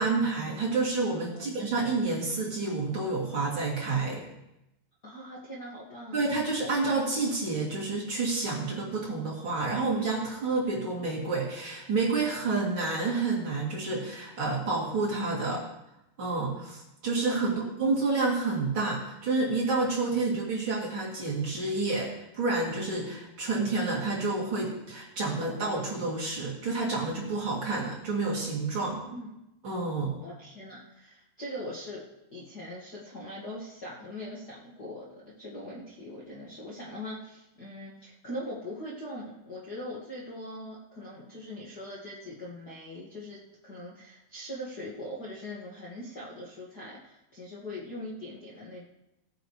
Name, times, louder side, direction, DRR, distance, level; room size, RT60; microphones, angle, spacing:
voice 1, 0.0-4.2 6.1-15.6 16.2-29.1 29.6-30.1, right 3 dB, 35° right, -5 dB, 2.9 m, -29 dB
voice 2, 5.0-6.4 17.1-17.7 29.0-29.3 30.2-32.0 32.3-48.8, equal, 80° left, -8 dB, 0.9 m, -41 dB
19.0 x 9.0 x 3.2 m, 0.90 s
omnidirectional pair, 5.0 m